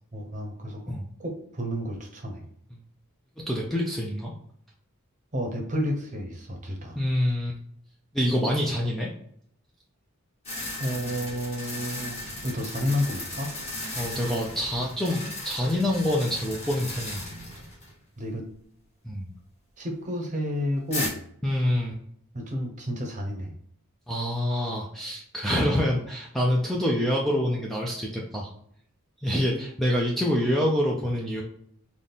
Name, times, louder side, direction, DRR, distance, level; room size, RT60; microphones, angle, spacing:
voice 1, 0.1-0.9 1.2-2.4 5.3-7.0 10.8-12.2 12.4-13.5 18.2-18.4 19.8-21.2 22.3-23.5, equal, 35° right, 3 dB, 0.8 m, -31 dB
voice 2, 3.4-4.3 7.0-7.6 8.1-9.1 14.0-17.3 19.0-19.3 21.4-22.0 24.1-28.5 29.2-31.4, equal, ahead, -3 dB, 0.4 m, -26 dB
sound 1, 10.4-17.9 18.2-18.3 20.9-21.1, left 1 dB, 30° left, 1.5 m, -36 dB
4.0 x 2.4 x 3.5 m, 0.65 s
head